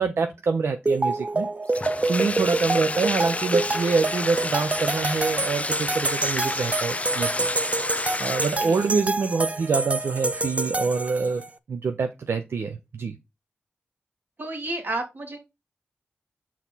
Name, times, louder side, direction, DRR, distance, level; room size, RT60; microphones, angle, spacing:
voice 1, 0.0-7.5 8.2-13.1, right 4 dB, 75° right, 0.6 m, -26 dB
sound 1, 0.9-11.5, right 2 dB, 30° right, 0.5 m, -27 dB
Bathtub (filling or washing), 1.7-9.0, left 3 dB, 35° left, 0.4 m, -30 dB
voice 2, 14.4-15.4, right 2 dB, 55° right, 2.5 m, -31 dB
6.1 x 4.3 x 4.0 m
cardioid pair, 40°, 4 cm